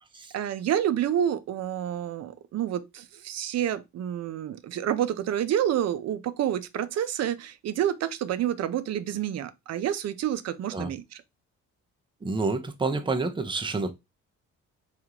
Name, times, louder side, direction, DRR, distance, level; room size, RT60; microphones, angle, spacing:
voice 1, 0.3-11.0, right 10 dB, 60° right, 0.5 m, -28 dB
voice 2, 12.2-13.9, right 3 dB, 15° right, 0.6 m, -28 dB
3.5 x 2.5 x 2.9 m
cardioid pair, 90°, 30 cm